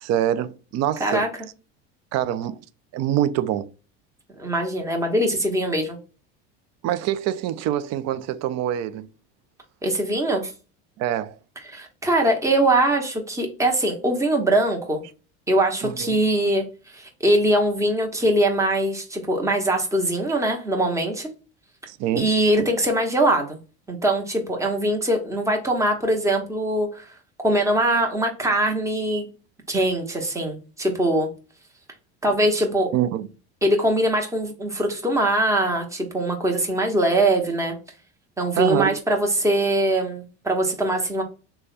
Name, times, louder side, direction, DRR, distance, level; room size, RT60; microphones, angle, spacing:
voice 1, 0.0-1.3 2.1-2.6 2.9-3.7 6.8-9.1 11.0-11.3 15.8-16.2 21.9-22.3 32.9-33.3 38.6-39.0, right 11 dB, 50° right, 0.5 m, -25 dB
voice 2, 4.4-6.0 9.8-10.5 11.7-15.0 15.5-16.6 16.9-21.3 22.2-23.6 23.9-27.0 27.4-29.3 29.7-31.3 32.2-32.9 33.6-37.8 38.4-41.2, right 1 dB, 10° right, 1.0 m, -22 dB
3.3 x 2.3 x 3.9 m
supercardioid pair, 105°, 33 cm